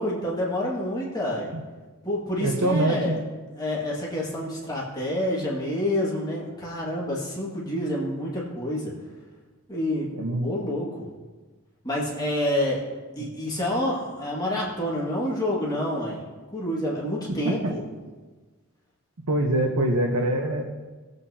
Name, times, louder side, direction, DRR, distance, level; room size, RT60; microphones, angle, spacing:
voice 1, 0.0-1.5 2.0-3.2 3.6-8.9 9.7-11.1 11.8-12.8 13.2-16.2 16.5-17.8, left 1 dB, 15° left, -5 dB, 1.9 m, -28 dB
voice 2, 2.4-3.2 10.1-10.5 19.3-20.6, right 1 dB, 85° right, 0 dB, 1.0 m, -24 dB
18.5 x 8.1 x 2.8 m, 1.3 s
head